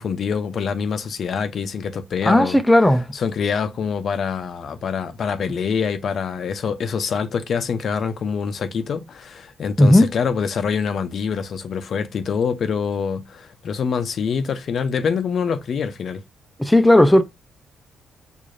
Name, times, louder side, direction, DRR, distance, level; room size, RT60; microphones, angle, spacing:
voice 1, 0.0-2.6 3.1-16.2, left 6 dB, 55° left, 0.5 m, -25 dB
voice 2, 2.2-3.1 9.8-10.1 16.6-17.2, left 1 dB, 5° left, 0.4 m, -14 dB
4.6 x 2.5 x 2.4 m
cardioid pair, 90°, 0 cm